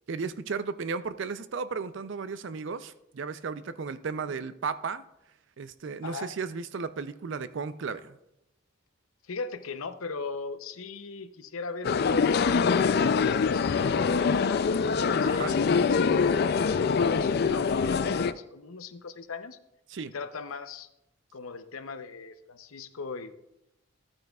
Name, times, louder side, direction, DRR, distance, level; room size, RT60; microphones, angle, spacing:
voice 1, 0.1-5.0 5.6-8.2 15.2-15.6 19.9-20.1, right 5 dB, 60° right, 0.4 m, -34 dB
voice 2, 9.3-14.7 15.1-16.6 16.9-19.6 20.1-20.9 21.3-23.3, left 4 dB, 85° left, 0.7 m, -39 dB
sound 1, 11.8-18.3, left 5 dB, 50° left, 0.3 m, -24 dB
13.0 x 8.9 x 2.3 m
head